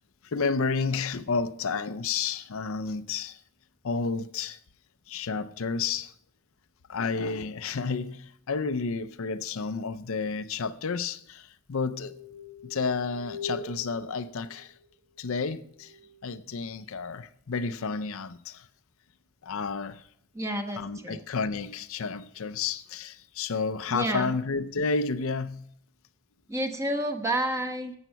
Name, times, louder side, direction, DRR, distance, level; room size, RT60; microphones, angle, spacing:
voice 1, 0.2-3.4 3.8-4.6 5.1-6.1 6.9-12.1 12.6-14.7 15.2-15.9 16.2-18.7 19.4-20.0 20.8-25.6, left 4 dB, 75° left, 0.6 m, -31 dB
sound 1, 11.9-14.8 15.7-16.2, left 2 dB, 50° right, 3.2 m, -42 dB
voice 2, 20.3-21.2 23.9-24.3 26.5-27.9, right 1 dB, 15° right, 1.0 m, -30 dB
12.0 x 8.0 x 5.7 m
head